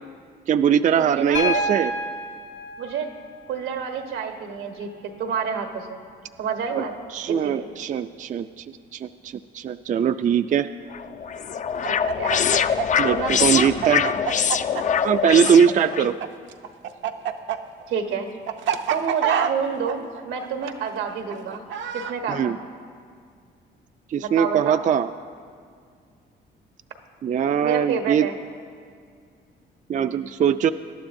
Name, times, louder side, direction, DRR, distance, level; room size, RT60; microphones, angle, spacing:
voice 1, 0.5-1.9 6.8-6.9 7.1-8.6 8.9-10.7 13.0-14.0 15.0-16.2 22.3-22.6 24.1-25.1 27.2-28.3 29.9-30.7, right 8 dB, 40° right, 10 dB, 0.4 m, -21 dB
voice 2, 1.0-1.6 2.8-3.1 3.5-4.9 5.2-6.0 6.4-6.9 7.3-7.6 11.8-12.4 13.1-13.7 17.9-18.3 18.9-21.6 21.9-22.6 24.2-24.8 27.6-28.3, right 6 dB, 90° right, 4 dB, 1.2 m, -28 dB
Piano, 1.3-5.3 6.9-7.0, left 1 dB, 85° left, 1.6 m, -31 dB
sound 1, 10.9-16.1, left 7 dB, 40° left, 0.4 m, -24 dB
Chicken rooster, 11.8-16.3 16.5-22.1, right 8 dB, 75° right, 0.7 m, -27 dB
20.0 x 12.0 x 2.6 m, 2.1 s
cardioid pair, 90°, 20 cm